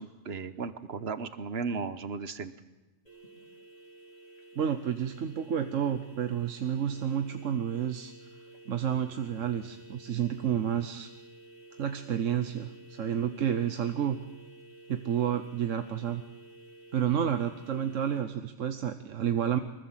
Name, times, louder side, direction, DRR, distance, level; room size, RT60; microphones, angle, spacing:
voice 1, 0.0-2.5, right 5 dB, 55° right, 12 dB, 1.3 m, -35 dB
sound 1, 3.1-18.2, right 2 dB, 30° left, 5.2 m, -52 dB
voice 2, 4.5-8.1 8.7-11.1 11.8-14.2 14.9-16.2 16.9-19.6, right 9 dB, 80° right, 8 dB, 1.3 m, -30 dB
24.0 x 20.5 x 7.4 m, 1.1 s
omnidirectional pair, 1.3 m